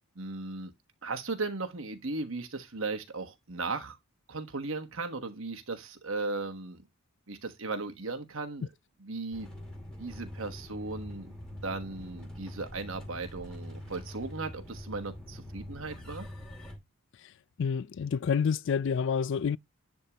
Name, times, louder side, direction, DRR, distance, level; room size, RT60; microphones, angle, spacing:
voice 1, 0.1-0.7 1.0-4.0 4.3-6.8 7.3-8.7 9.0-9.5 10.0-11.3 11.6-16.3, right 3 dB, 60° right, 1.3 m, -37 dB
sound 1, 9.3-16.8, left 1 dB, 5° left, 2.4 m, -44 dB
voice 2, 17.6-19.6, left 6 dB, 55° left, 0.3 m, -28 dB
10.5 x 3.6 x 2.9 m
head